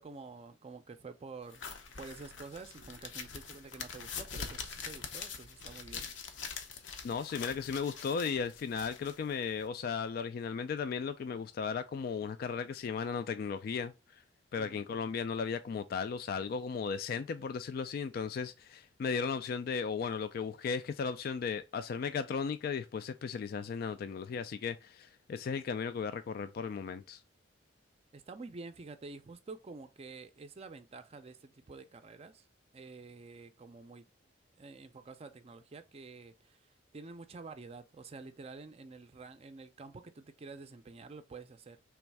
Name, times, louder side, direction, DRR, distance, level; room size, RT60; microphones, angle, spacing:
voice 1, 0.0-1.6 2.0-6.1 14.5-14.8 28.1-32.4 32.7-34.0 34.6-36.6 36.9-41.8, right 3 dB, 35° right, 0.4 m, -49 dB
sound 1, 1.5-9.7, left 6 dB, 85° left, 0.7 m, -44 dB
voice 2, 7.0-14.2 14.5-27.2, left 6 dB, 55° left, 0.3 m, -36 dB
3.5 x 3.1 x 4.5 m
head